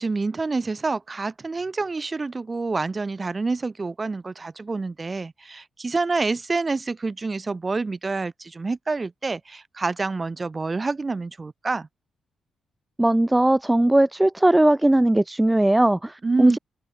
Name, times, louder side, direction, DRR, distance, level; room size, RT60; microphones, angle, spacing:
voice 1, 0.0-11.9 16.2-16.6, right 3 dB, 25° right, 1.6 m, -27 dB
voice 2, 13.0-16.6, right 1 dB, 10° right, 0.7 m, -19 dB
open air
cardioid pair, 120°, 0 cm